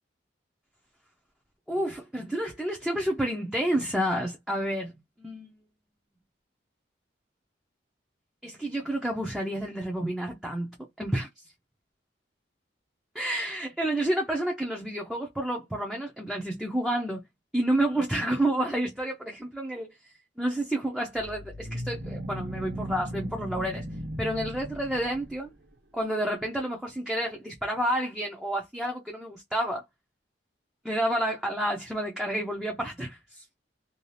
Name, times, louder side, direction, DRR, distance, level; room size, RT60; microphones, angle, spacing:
voice 1, 1.7-4.9 5.2-5.5 8.4-11.3 13.1-17.2 17.5-19.9 20.4-23.8 24.2-25.5 25.9-29.8 30.8-33.4, right 1 dB, 5° right, 0.5 m, -29 dB
sound 1, 21.1-25.5, equal, 70° right, 1.0 m, -37 dB
2.6 x 2.3 x 3.2 m
head